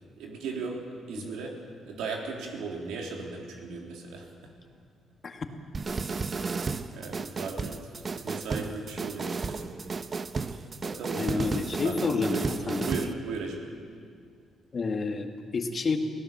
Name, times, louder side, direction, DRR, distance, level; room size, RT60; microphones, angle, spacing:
voice 1, 0.2-4.5 6.3-6.7 6.9-7.8 8.1-9.7 10.5-11.5 11.8-13.6, right 4 dB, 90° right, 0 dB, 3.5 m, -37 dB
sound 1, 5.7-13.1, right 4 dB, 40° right, 0.9 m, -33 dB
voice 2, 11.2-12.9 14.7-16.0, left 4 dB, 40° left, 5 dB, 1.9 m, -29 dB
24.5 x 16.5 x 7.3 m, 2.2 s
cardioid pair, 90°, 0 cm